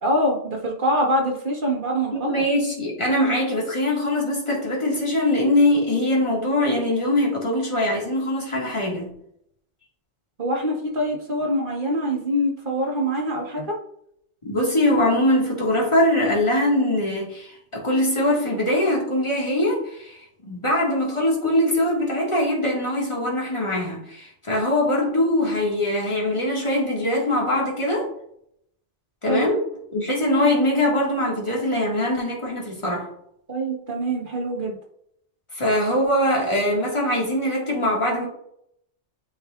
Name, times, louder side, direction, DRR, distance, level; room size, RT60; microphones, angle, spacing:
voice 1, 0.0-2.4 10.4-13.8 29.3-29.6 33.5-34.8, equal, 45° right, -1 dB, 1.7 m, -24 dB
voice 2, 2.1-9.1 14.4-28.1 29.2-29.6 29.9-33.1 35.6-38.3, left 1 dB, 25° left, -3 dB, 2.0 m, -22 dB
8.5 x 4.7 x 2.5 m, 0.70 s
omnidirectional pair, 1.2 m